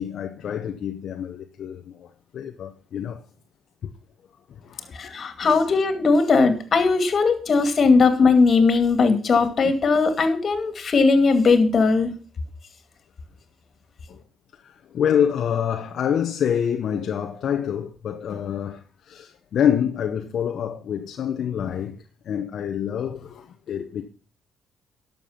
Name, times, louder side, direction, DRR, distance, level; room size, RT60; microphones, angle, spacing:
voice 1, 0.0-1.8 2.3-3.2 3.8-3.9 4.6-4.9 5.4-5.6 9.6-9.7 14.1-14.2 14.9-18.8 19.1-22.0 22.3-24.1, left 8 dB, 65° left, 0.9 m, -26 dB
voice 2, 5.0-12.1, left 4 dB, 50° left, 2.3 m, -19 dB
11.5 x 6.9 x 5.9 m
cardioid pair, 90°, 0 cm